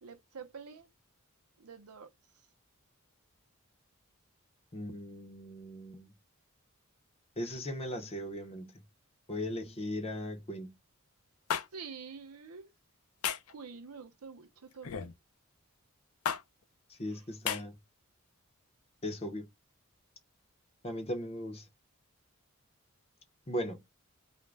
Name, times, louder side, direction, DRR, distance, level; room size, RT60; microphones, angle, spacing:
voice 1, 0.0-0.9 1.6-2.1 11.7-12.7 13.5-15.1 17.1-17.3, right 5 dB, 85° right, 0.7 m, -47 dB
voice 2, 4.7-6.1 7.4-8.7 9.3-10.7 17.0-17.8 19.0-19.5 20.8-21.6 23.5-23.8, left 1 dB, 25° left, 0.6 m, -38 dB
sound 1, 11.5-11.7 13.2-13.5 14.8-15.1 16.3-16.4 17.5-17.6, left 8 dB, 75° left, 0.5 m, -32 dB
2.4 x 2.1 x 3.2 m
head